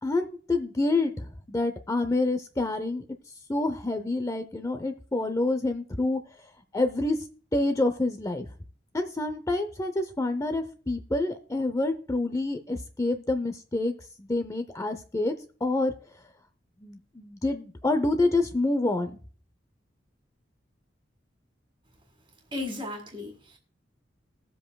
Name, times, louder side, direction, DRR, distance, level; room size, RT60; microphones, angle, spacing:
voice 1, 0.0-3.0 3.5-6.2 6.7-7.2 7.5-8.5 8.9-15.3 15.6-15.9 16.8-19.2, left 2 dB, 15° left, 0.6 m, -27 dB
voice 2, 22.5-23.6, left 2 dB, 30° right, 2.0 m, -35 dB
20.0 x 7.7 x 2.3 m
head